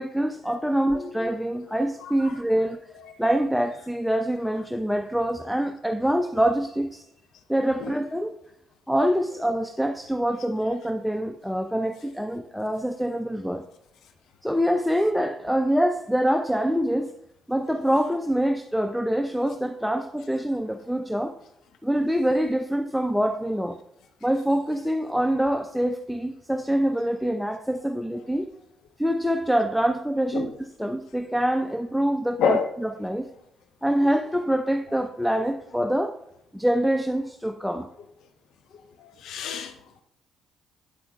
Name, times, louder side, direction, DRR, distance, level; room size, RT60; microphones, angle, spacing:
voice 1, 0.0-2.8 3.2-7.0 7.5-8.3 8.9-13.6 14.4-17.1 17.5-21.4 21.8-23.8 24.2-28.5 29.0-33.3 33.8-36.2 36.5-37.9, equal, ahead, 6 dB, 0.4 m, -25 dB
voice 2, 2.0-2.3 7.8-7.9 30.3-30.5 32.4-32.7 34.0-34.2 35.4-35.5 39.2-39.7, left 7 dB, 60° left, 8 dB, 0.6 m, -28 dB
8.7 x 8.0 x 2.3 m, 0.79 s
hypercardioid pair, 45°, 0 cm